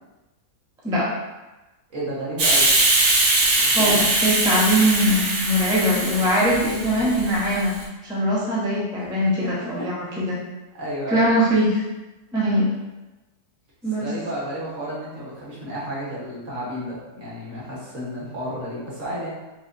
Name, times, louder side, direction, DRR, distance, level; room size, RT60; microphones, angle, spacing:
voice 1, 1.9-2.7 3.6-4.1 9.0-9.1 9.4-9.5 9.8-10.1 10.7-11.3 14.0-19.3, equal, 55° right, -7 dB, 1.5 m, -32 dB
Hiss, 2.4-7.8, right 2 dB, 75° right, 1.4 m, -21 dB
voice 2, 3.6-7.8 8.0-10.4 11.1-11.8 12.3-12.7 13.8-14.1, equal, 5° right, -7 dB, 0.3 m, -21 dB
4.7 x 2.4 x 2.5 m, 1.1 s
omnidirectional pair, 1.7 m